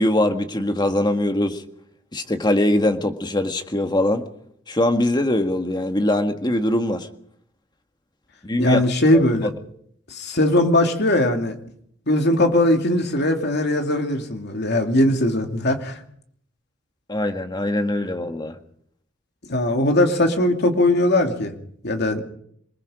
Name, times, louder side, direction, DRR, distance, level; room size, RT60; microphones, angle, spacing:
voice 1, 0.0-1.6 2.1-4.3 4.7-7.1 8.4-8.9 9.1-9.5 17.1-18.6, left 1 dB, 25° left, 6 dB, 1.8 m, -22 dB
voice 2, 8.6-9.5 10.1-11.5 12.1-16.0 19.5-21.5 21.8-22.2, left 1 dB, 60° left, 4 dB, 2.7 m, -19 dB
27.0 x 20.0 x 5.1 m, 0.67 s
head